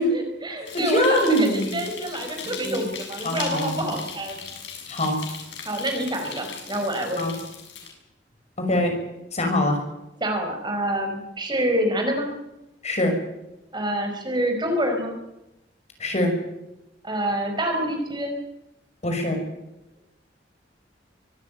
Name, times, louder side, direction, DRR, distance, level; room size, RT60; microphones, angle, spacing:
voice 1, 0.0-4.3 5.6-7.2 10.2-12.3 13.7-15.2 17.0-18.3, right 1 dB, 25° right, 4 dB, 5.0 m, -27 dB
sound 1, 0.7-7.9, left 6 dB, 80° left, 6.8 m, -38 dB
voice 2, 0.8-1.8 2.6-2.8 3.2-3.7 4.9-5.2 7.2-7.3 8.6-8.9 9.3-9.8 12.8-13.1 16.0-16.3 19.0-19.4, left 1 dB, 40° left, 4 dB, 5.8 m, -23 dB
24.5 x 15.5 x 9.1 m, 0.91 s
head